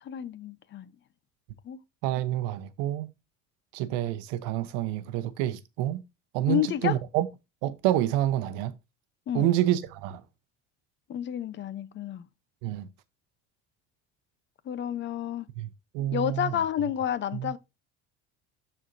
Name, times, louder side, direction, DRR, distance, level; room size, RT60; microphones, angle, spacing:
voice 1, 0.0-0.9 1.6-1.8 6.5-7.0 9.3-9.5 11.1-12.3 14.7-15.5 16.1-17.6, left 10 dB, 40° left, 0.7 m, -30 dB
voice 2, 2.0-3.1 3.7-6.0 6.3-7.3 7.6-8.7 9.3-10.2 12.6-12.9 15.6-15.7 15.9-16.6 17.3-17.5, right 13 dB, 85° right, 0.9 m, -28 dB
12.5 x 4.5 x 2.6 m
cardioid pair, 125°, 30 cm